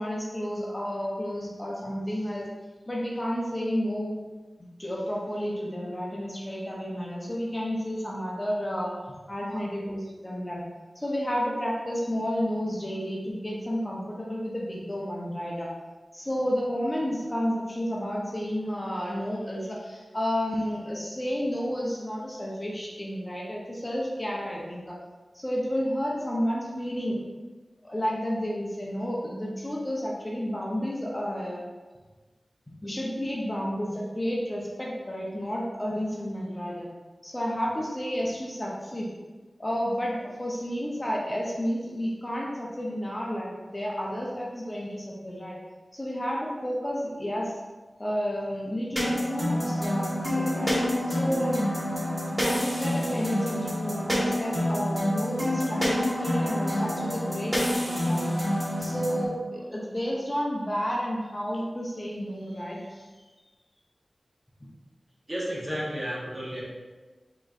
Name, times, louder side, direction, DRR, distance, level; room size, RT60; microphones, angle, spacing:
voice 1, 0.0-2.4 2.9-4.2 4.8-8.9 9.3-10.6 11.0-15.7 16.1-25.0 25.3-27.2 27.8-31.6 32.8-36.9 37.2-39.1 39.6-45.6 45.9-47.6 48.0-50.7 51.1-51.7 52.0-52.1 52.4-58.4 58.8-63.1, equal, 25° left, -4 dB, 0.8 m, -31 dB
sound 1, 49.0-59.2, equal, 10° right, 1.2 m, -27 dB
voice 2, 65.3-66.6, equal, 30° right, -6 dB, 1.3 m, -32 dB
4.8 x 2.9 x 2.5 m, 1.3 s
wide cardioid pair, 55°, 0 cm